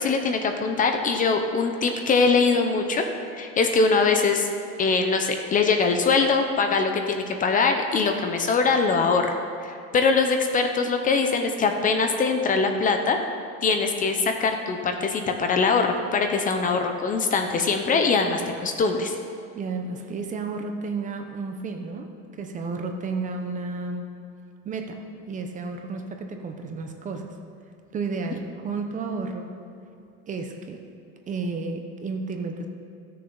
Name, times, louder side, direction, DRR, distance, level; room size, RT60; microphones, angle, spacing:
voice 1, 0.0-4.5 4.8-9.3 9.6-13.2 13.6-19.1, left 4 dB, 30° left, 5 dB, 0.7 m, -22 dB
voice 2, 19.6-22.1 22.4-24.1 24.6-27.4 27.9-29.6 30.3-30.8 31.3-32.7, right 4 dB, 25° right, 4 dB, 0.8 m, -32 dB
15.5 x 6.7 x 3.9 m, 2.6 s
cardioid pair, 145°, 29 cm